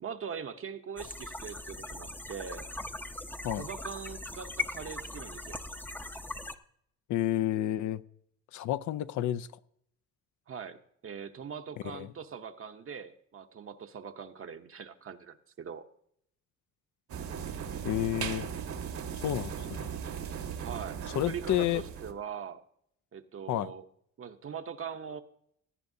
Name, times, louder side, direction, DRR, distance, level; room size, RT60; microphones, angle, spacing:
voice 1, 0.0-2.7 3.6-5.6 10.5-15.8 20.6-22.6 23.1-23.8 24.2-25.2, right 7 dB, 45° right, 0.8 m, -42 dB
sound 1, 1.0-6.5, left 2 dB, 5° left, 0.6 m, -40 dB
voice 2, 7.1-8.0 8.5-9.5 11.9-12.1 17.8-18.5 19.2-19.9 21.1-21.8 23.5-23.7, left 12 dB, 75° left, 0.6 m, -30 dB
sound 2, 17.1-22.1, right 7 dB, 70° right, 1.4 m, -38 dB
17.0 x 10.5 x 2.7 m
cardioid pair, 90°, 30 cm